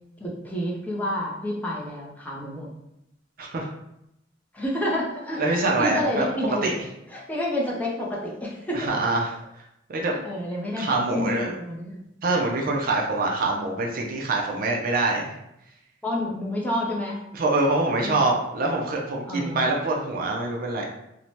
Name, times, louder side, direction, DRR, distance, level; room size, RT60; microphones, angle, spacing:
voice 1, 0.2-2.7 4.5-6.8 7.1-8.9 10.0-12.1 16.0-17.2 18.0-18.2 19.2-19.6, left 1 dB, 10° left, -4 dB, 0.5 m, -29 dB
voice 2, 3.4-3.7 5.4-6.7 8.7-9.4 9.9-10.1 10.8-11.5 12.2-15.3 17.3-20.9, right 2 dB, 50° right, 0 dB, 0.4 m, -25 dB
2.6 x 2.1 x 3.0 m, 0.83 s
head